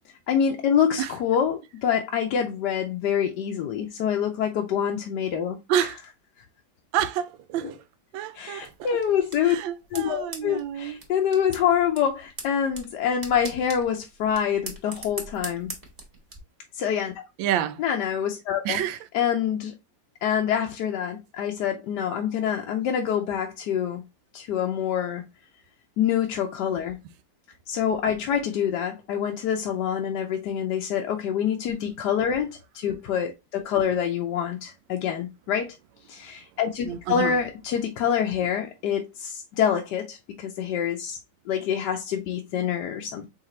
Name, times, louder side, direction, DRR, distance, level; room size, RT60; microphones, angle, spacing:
voice 1, 0.3-5.6 7.6-7.7 8.3-9.6 9.9-15.7 16.7-17.2 17.8-18.8 19.1-19.7 20.2-24.0 24.3-25.2 26.0-27.0 27.7-35.7 36.1-41.2 41.5-43.3, left 8 dB, 70° left, 1.2 m, -26 dB
voice 2, 5.7-6.0 6.9-7.8 8.1-9.0 9.4-11.0 17.4-17.8 18.6-19.0 36.8-37.4, right 10 dB, 85° right, 1.3 m, -28 dB
sound 1, 8.6-16.4, right 2 dB, 25° right, 1.0 m, -42 dB
4.8 x 3.5 x 3.1 m
omnidirectional pair, 2.0 m